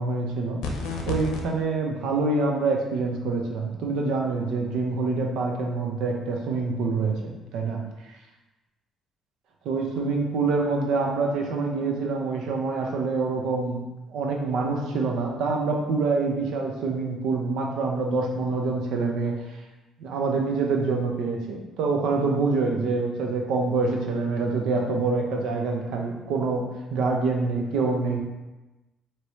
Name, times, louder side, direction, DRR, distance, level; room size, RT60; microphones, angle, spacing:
voice 1, 0.0-7.8 9.6-13.8 14.1-19.4 20.0-26.6 26.9-28.2, right 3 dB, 80° right, 1 dB, 0.7 m, -26 dB
sound 1, 0.6-1.4, left 3 dB, 90° left, 0.6 m, -30 dB
4.7 x 3.0 x 3.1 m, 1.1 s
cardioid pair, 90°, 0 cm